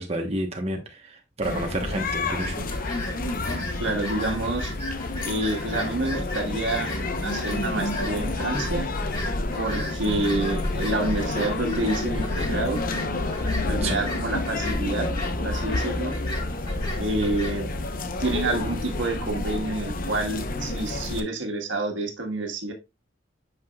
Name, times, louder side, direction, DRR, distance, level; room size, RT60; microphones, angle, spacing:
voice 1, 0.0-2.7 13.8-14.0, right 1 dB, 35° right, 1.1 m, -30 dB
sound 1, 1.4-21.2, left 2 dB, 50° left, 0.8 m, -29 dB
sound 2, 2.4-17.6, left 1 dB, 25° left, 3.6 m, -37 dB
voice 2, 3.7-4.7 5.2-6.9 7.2-8.9 9.6-12.8 13.7-15.1 15.4-16.1 17.0-17.7 18.2-22.7, right 2 dB, 80° right, 1.6 m, -28 dB
8.3 x 5.8 x 2.3 m
head